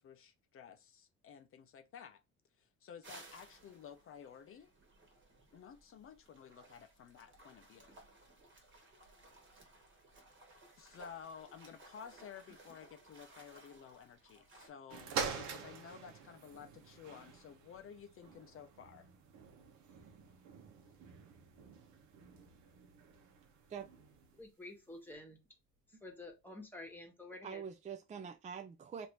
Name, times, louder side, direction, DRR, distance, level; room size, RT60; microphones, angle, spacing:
voice 1, 0.0-2.2 2.6-4.7 5.5-8.0 10.8-19.1, left 7 dB, 50° left, 0.5 m, -53 dB
sound 1, 3.0-14.7, right 2 dB, 40° right, 1.3 m, -60 dB
sound 2, 14.9-24.4 25.1-25.2, right 6 dB, 80° right, 0.9 m, -46 dB
voice 2, 24.3-25.4 25.9-27.7, left 2 dB, 5° left, 1.1 m, -50 dB
voice 3, 27.4-29.1, right 7 dB, 25° right, 0.4 m, -45 dB
3.3 x 2.6 x 3.0 m
cardioid pair, 110°, 29 cm